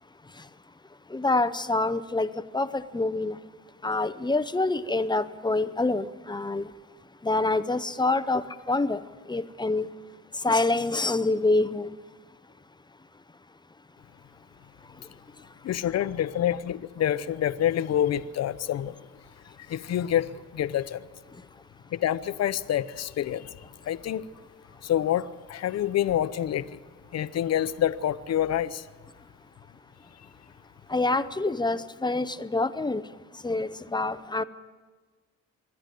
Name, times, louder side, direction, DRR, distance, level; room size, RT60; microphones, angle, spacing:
voice 1, 1.1-3.4 3.8-6.7 7.2-9.0 9.3-9.9 10.4-11.9 30.9-33.0 33.4-34.4, left 2 dB, 15° left, 0.7 m, -26 dB
voice 2, 15.6-19.0 19.7-21.0 21.9-23.5 23.9-24.3 24.8-26.8 27.1-28.8, left 11 dB, 60° left, 0.8 m, -27 dB
26.5 x 11.0 x 9.2 m
cardioid pair, 110°, 29 cm